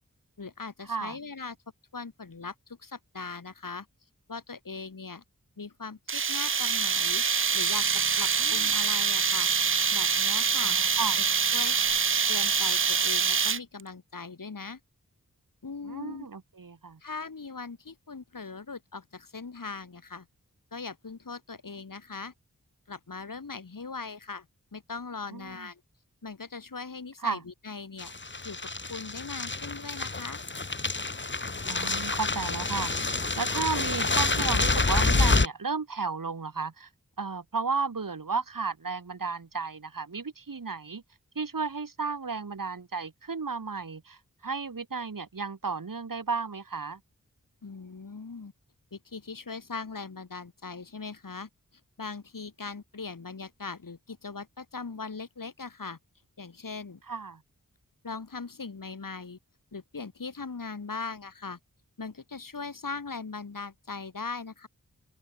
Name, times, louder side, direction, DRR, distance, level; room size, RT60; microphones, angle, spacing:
voice 1, 0.4-1.6 1.9-3.9 4.3-5.2 5.6-7.2 7.5-7.9 8.2-9.5 9.9-10.8 11.2-11.3 11.5-11.8 12.3-14.8 15.6-16.3 17.0-20.3 20.7-22.3 22.9-24.5 24.7-25.8 26.2-28.1 28.4-28.6 28.9-30.4 47.6-48.5 48.9-51.5 52.0-56.0 56.4-57.0 58.0-59.4 59.7-61.6 62.0-64.7, left 4 dB, 80° left, 5.1 m, -40 dB
sound 1, 6.1-13.8, right 6 dB, 40° right, 0.5 m, -25 dB
voice 2, 8.4-8.8 10.6-11.2 15.8-17.0 25.3-25.7 27.2-27.4 31.7-36.9 37.2-41.0 41.4-47.0 57.1-57.4, right 4 dB, 85° right, 3.9 m, -33 dB
sound 2, 28.0-35.5, left 3 dB, 35° left, 1.5 m, -28 dB
open air
wide cardioid pair, 55°, 32 cm